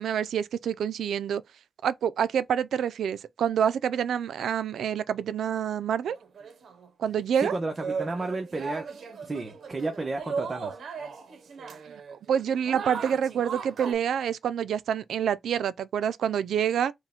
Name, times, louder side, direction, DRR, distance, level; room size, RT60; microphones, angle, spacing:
voice 1, 0.0-1.4 1.8-6.2 7.0-7.5 12.1-16.9, right 8 dB, 90° right, 0.3 m, -27 dB
sound 1, 6.1-6.9 7.4-13.9, right 5 dB, 70° right, 0.7 m, -37 dB
voice 2, 7.4-8.9 9.2-10.8, right 2 dB, 35° right, 0.8 m, -32 dB
4.7 x 2.1 x 3.6 m
cardioid pair, 95°, 0 cm